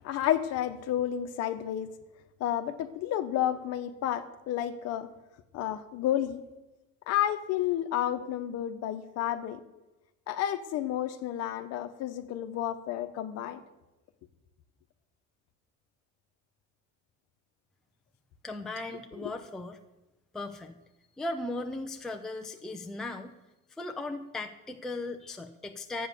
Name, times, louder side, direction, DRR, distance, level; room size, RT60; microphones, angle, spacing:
voice 1, 0.0-1.9 2.4-5.1 5.5-6.4 7.1-9.6 10.3-13.6 19.2-19.3, left 11 dB, 55° left, 9 dB, 1.1 m, -31 dB
voice 2, 18.4-19.8 20.3-20.8 21.2-23.3 23.8-26.1, left 2 dB, ahead, 3 dB, 0.5 m, -37 dB
13.0 x 8.7 x 6.8 m, 1.0 s
cardioid pair, 175°, 31 cm